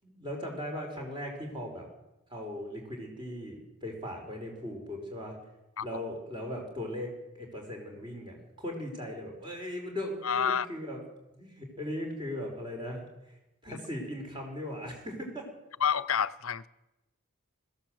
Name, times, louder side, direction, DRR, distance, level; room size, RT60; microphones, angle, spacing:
voice 1, 0.0-1.9 2.3-5.4 5.8-11.0 11.3-13.1 13.6-15.5, left 1 dB, 20° right, 5.2 m, -38 dB
voice 2, 10.2-10.7 13.7-13.8 15.8-16.7, left 7 dB, 75° left, 0.7 m, -28 dB
21.0 x 16.0 x 7.9 m
head